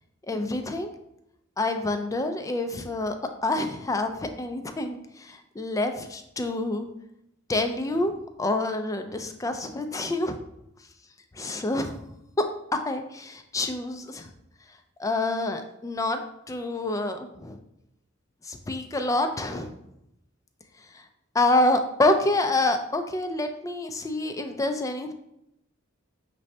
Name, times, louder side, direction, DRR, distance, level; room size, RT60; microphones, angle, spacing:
voice 1, 0.3-0.9 1.6-3.2 3.4-6.9 7.5-8.1 8.4-10.4 11.4-12.0 12.9-14.3 15.0-16.2 16.5-17.6 18.5-19.7 21.3-25.1, left 2 dB, 15° left, 6 dB, 0.4 m, -27 dB
6.0 x 2.7 x 3.2 m, 0.82 s
head